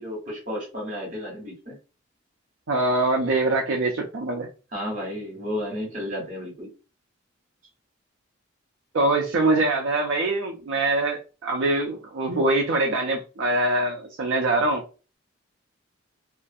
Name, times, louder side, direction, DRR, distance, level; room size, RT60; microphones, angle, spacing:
voice 1, 0.0-1.8 4.7-6.7, left 1 dB, 40° right, 1.2 m, -32 dB
voice 2, 2.7-4.5 8.9-14.8, right 2 dB, 70° right, 0.4 m, -23 dB
2.5 x 2.3 x 2.5 m
head